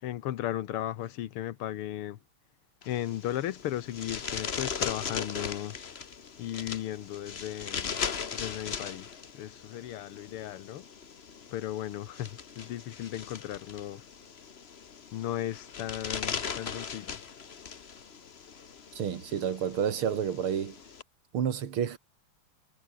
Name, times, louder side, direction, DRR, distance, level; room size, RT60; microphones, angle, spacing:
voice 1, 0.0-2.2 2.9-5.8 6.4-8.0 8.3-10.9 11.5-14.0 15.1-17.2, left 12 dB, 90° left, 1.9 m, -36 dB
sound 1, 2.8-21.0, left 6 dB, 40° left, 1.0 m, -39 dB
voice 2, 18.9-20.8 21.3-22.0, right 8 dB, 75° right, 2.6 m, -30 dB
omnidirectional pair, 2.4 m